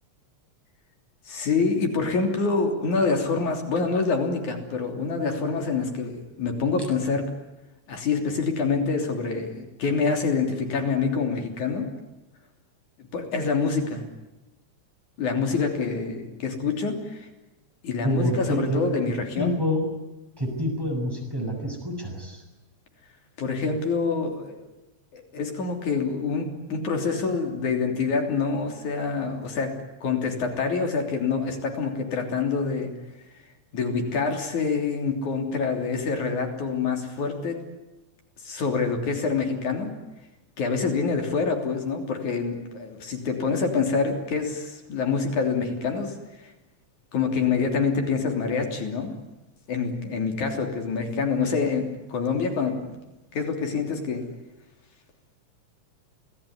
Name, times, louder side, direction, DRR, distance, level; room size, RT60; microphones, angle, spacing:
voice 1, 1.3-7.3 7.9-11.9 13.0-14.0 15.2-17.3 17.8-19.5 23.4-24.7 25.1-29.7 30.0-32.9 33.7-37.6 38.4-39.9 40.6-46.5 47.1-49.1 49.7-53.0 53.3-54.3, left 4 dB, 90° left, 4 dB, 4.7 m, -26 dB
voice 2, 18.0-19.8 20.4-22.4, equal, 5° right, 1 dB, 6.9 m, -27 dB
27.5 x 18.5 x 9.7 m, 1.0 s
omnidirectional pair, 3.3 m